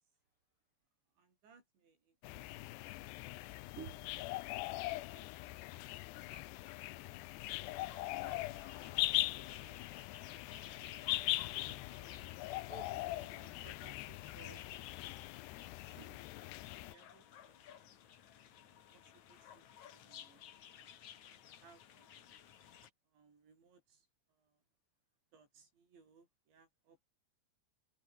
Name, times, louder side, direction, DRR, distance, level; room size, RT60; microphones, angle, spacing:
voice 1, 1.2-3.0 4.1-4.2 4.7-5.3 6.0-6.9 8.2-8.7 9.0-10.0 10.7-11.4 13.1-13.8 15.8-16.2 16.7-17.7 18.7-22.3 23.1-24.6 25.3-27.1, right 5 dB, 75° right, 9.3 m, -68 dB
sound 1, 2.2-16.9, left 19 dB, 80° left, 2.7 m, -41 dB
voice 2, 3.8-4.3 11.1-12.4 12.7-14.6 15.8-16.3, right 6 dB, 55° right, 1.6 m, -56 dB
sound 2, 7.4-22.9, left 10 dB, 55° left, 2.5 m, -56 dB
omnidirectional pair, 5.2 m